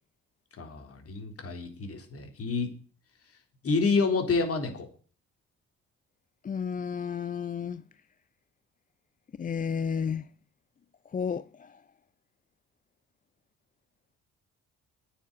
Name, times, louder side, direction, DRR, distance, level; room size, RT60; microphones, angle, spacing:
voice 1, 0.6-2.7 3.6-4.9, left 4 dB, 50° left, 3.7 m, -28 dB
voice 2, 6.4-7.8 9.4-10.3 11.1-11.7, left 6 dB, 30° left, 0.5 m, -32 dB
9.7 x 7.1 x 8.0 m
cardioid pair, 90°, 30 cm